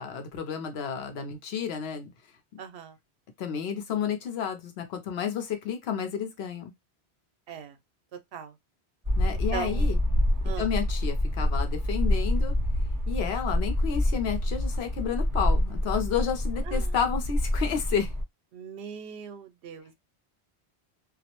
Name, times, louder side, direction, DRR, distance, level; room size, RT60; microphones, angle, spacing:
voice 1, 0.0-2.1 3.4-6.7 9.2-10.0 10.6-12.5 13.1-18.1, left 7 dB, 75° left, 0.9 m, -31 dB
voice 2, 2.6-2.9 7.5-7.7 8.3-8.5 9.3-9.9 10.4-10.7 16.7-16.9 18.5-19.9, right 8 dB, 80° right, 0.8 m, -39 dB
sound 1, 9.1-18.2, left 1 dB, 20° right, 0.9 m, -27 dB
2.3 x 2.0 x 2.8 m
omnidirectional pair, 1.1 m